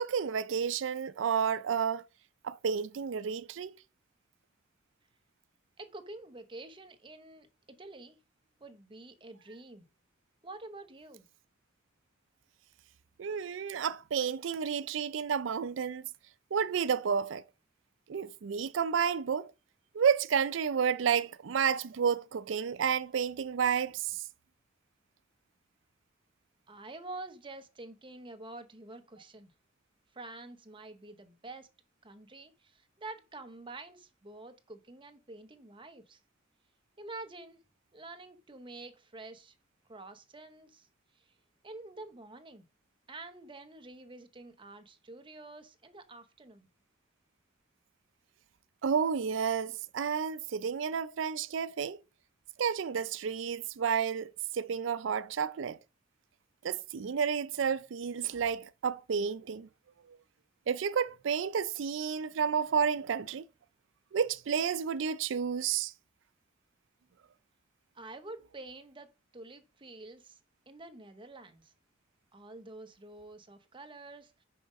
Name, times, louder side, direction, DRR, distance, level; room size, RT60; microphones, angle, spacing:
voice 1, 0.0-2.0 2.4-3.8 13.2-16.1 16.5-17.4 18.1-19.5 19.9-24.2 48.8-52.0 52.6-55.8 56.6-59.7 60.7-63.4 64.1-65.9, right 7 dB, 75° right, 0.4 m, -31 dB
voice 2, 5.8-8.2 8.6-9.8 10.4-11.2 26.7-29.5 30.1-31.7 32.0-36.2 37.0-37.6 37.9-39.5 39.9-40.9 41.2-41.3 41.6-42.6 43.1-46.7 67.9-69.1 69.3-70.4 70.7-71.7 72.3-74.4, right 2 dB, 25° right, 0.9 m, -48 dB
5.9 x 4.9 x 5.2 m
head